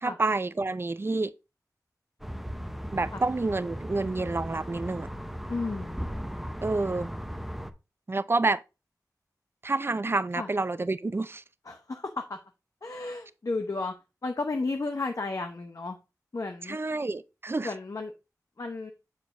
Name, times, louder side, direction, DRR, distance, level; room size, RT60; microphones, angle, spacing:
voice 1, 0.0-1.3 2.9-5.1 6.6-7.1 8.1-8.6 9.6-11.4 16.6-17.7, right 3 dB, 35° right, 0.5 m, -28 dB
sound 1, 2.2-7.7, equal, 5° right, 0.7 m, -37 dB
voice 2, 5.5-6.0 10.4-10.5 11.6-12.4 12.8-13.9 14.2-16.0 16.3-16.8 17.6-18.1 18.6-18.9, left 3 dB, 55° left, 0.8 m, -33 dB
7.1 x 6.6 x 2.5 m
wide cardioid pair, 75°, 7 cm